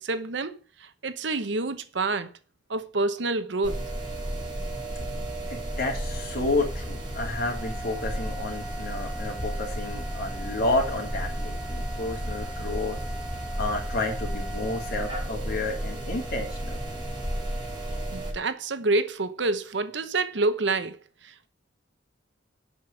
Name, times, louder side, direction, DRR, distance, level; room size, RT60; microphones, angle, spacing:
voice 1, 0.0-2.3 2.7-3.8 18.1-21.5, right 3 dB, 70° right, 1.0 m, -28 dB
sound 1, 3.6-18.3, right 1 dB, 25° right, 4.3 m, -33 dB
voice 2, 5.5-13.0 13.6-16.8, left 2 dB, 55° left, 3.6 m, -30 dB
8.4 x 6.1 x 6.8 m
head